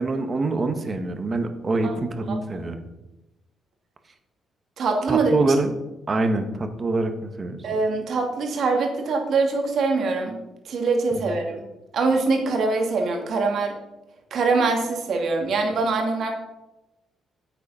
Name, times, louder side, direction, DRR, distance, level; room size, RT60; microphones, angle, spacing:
voice 1, 0.0-2.8 5.1-5.7 6.1-7.7 11.1-11.2, right 2 dB, 35° right, 7 dB, 1.6 m, -25 dB
voice 2, 4.8-5.3 7.6-10.4 10.6-11.6 11.9-13.8 14.3-16.3, right 3 dB, 65° right, 2 dB, 2.5 m, -23 dB
9.4 x 8.4 x 5.6 m, 0.97 s
cardioid pair, 90°, 0 cm